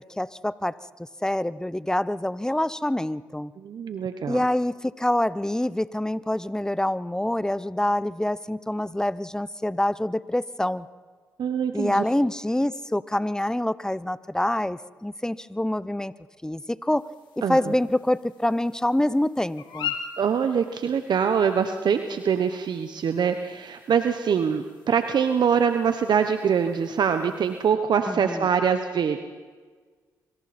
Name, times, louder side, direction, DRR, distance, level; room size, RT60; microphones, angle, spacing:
voice 1, 0.2-0.7 1.2-3.5 4.3-10.9 11.7-16.1 16.4-17.0 17.5-19.9 28.1-28.5, left 1 dB, 10° left, 17 dB, 0.9 m, -26 dB
voice 2, 3.6-4.4 11.4-12.0 17.4-17.6 20.2-29.2, right 7 dB, 65° right, 8 dB, 1.2 m, -24 dB
sound 1, 16.9-27.7, left 8 dB, 70° left, 2.8 m, -42 dB
26.0 x 25.0 x 4.4 m, 1.5 s
supercardioid pair, 45°, 8 cm